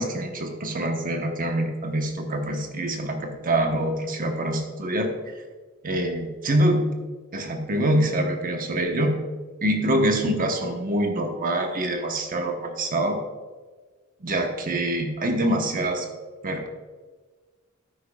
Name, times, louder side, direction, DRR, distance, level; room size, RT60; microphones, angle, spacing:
voice 1, 0.0-5.1 5.8-6.9 7.3-9.2 9.6-13.2 14.2-16.1 16.4-16.7, right 1 dB, 40° right, 4 dB, 1.0 m, -25 dB
12.5 x 9.9 x 2.3 m, 1.4 s
head